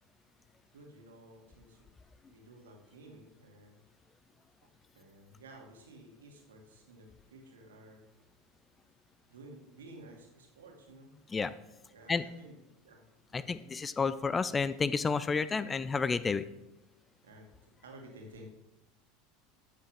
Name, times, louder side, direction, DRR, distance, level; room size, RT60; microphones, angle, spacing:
voice 1, 0.7-1.9 2.3-3.8 4.9-8.1 9.3-11.1 11.9-12.6 12.8-13.5 17.2-18.5, right 1 dB, 70° right, 1 dB, 2.1 m, -53 dB
voice 2, 13.3-16.5, left 5 dB, 20° left, 16 dB, 0.4 m, -30 dB
13.0 x 8.8 x 3.3 m, 0.93 s
figure-of-eight pair, 75°, 0 cm